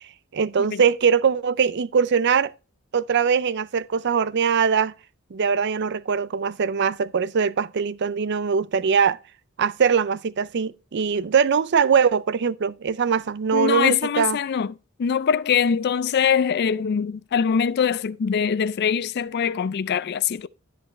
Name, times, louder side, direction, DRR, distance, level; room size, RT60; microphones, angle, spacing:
voice 1, 0.3-2.5 2.9-4.9 5.3-9.2 9.6-14.4, right 6 dB, 55° right, 0.5 m, -22 dB
voice 2, 13.5-14.7 15.0-20.5, left 7 dB, 50° left, 0.4 m, -23 dB
12.0 x 5.5 x 4.1 m
head